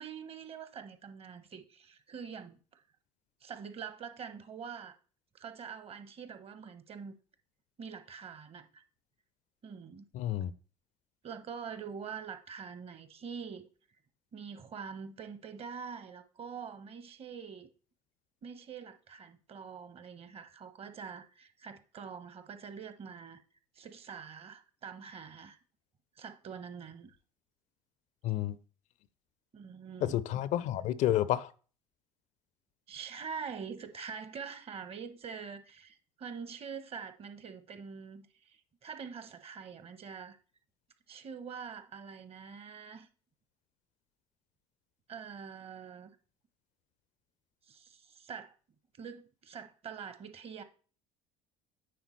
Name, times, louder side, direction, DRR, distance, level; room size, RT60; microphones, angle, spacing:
voice 1, 0.0-2.8 3.4-5.0 5.3-7.2 7.8-8.8 9.6-10.0 11.2-13.7 14.3-17.7 18.4-23.4 23.7-25.6 26.2-27.2 29.5-30.2 32.9-40.4 41.1-43.1 45.1-46.1 47.6-48.6 48.9-50.6, right 6 dB, 40° right, 0.9 m, -45 dB
voice 2, 10.1-10.5 28.2-28.6 30.0-31.5, left 12 dB, 55° left, 0.4 m, -30 dB
9.3 x 3.6 x 3.1 m
hypercardioid pair, 70°, 15 cm